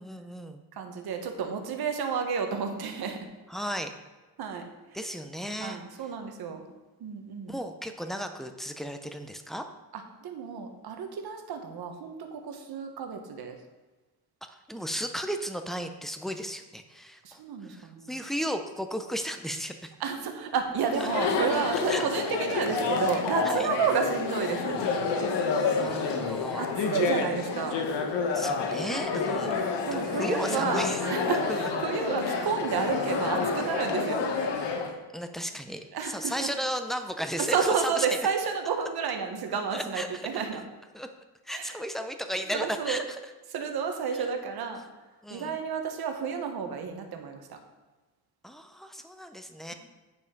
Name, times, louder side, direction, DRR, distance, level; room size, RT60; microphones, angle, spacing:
voice 1, 0.0-0.6 3.5-3.9 4.9-5.8 7.5-9.6 14.5-19.9 21.9-22.0 23.4-23.7 25.8-26.7 28.3-29.6 29.9-31.0 31.5-31.7 35.1-38.2 39.7-40.2 40.9-41.1 41.5-43.2 44.1-44.2 45.2-45.5 48.4-49.7, equal, ahead, 7 dB, 0.6 m, -34 dB
voice 2, 0.7-3.3 4.4-4.7 5.6-6.6 7.0-7.6 9.9-13.6 17.2-18.2 20.0-24.8 26.6-27.8 29.3-34.3 35.9-36.5 37.4-40.6 41.5-41.8 42.5-43.0 43.5-44.8 45.3-47.6, right 6 dB, 65° right, 4 dB, 1.4 m, -31 dB
Chatter, 20.8-34.9, left 4 dB, 85° left, 1.3 m, -29 dB
9.4 x 5.5 x 5.3 m, 1.2 s
cardioid pair, 135°, 41 cm